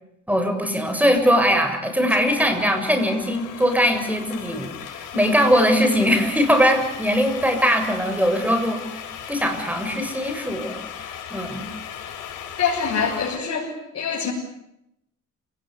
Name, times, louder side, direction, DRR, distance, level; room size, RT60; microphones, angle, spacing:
voice 1, 0.3-11.7, equal, 5° right, 6 dB, 7.4 m, -21 dB
sound 1, 2.1-13.4, left 8 dB, 85° left, 5.7 m, -37 dB
voice 2, 12.6-14.3, left 6 dB, 55° left, -3 dB, 7.3 m, -25 dB
29.5 x 19.0 x 9.8 m, 0.84 s
cardioid pair, 90°, 30 cm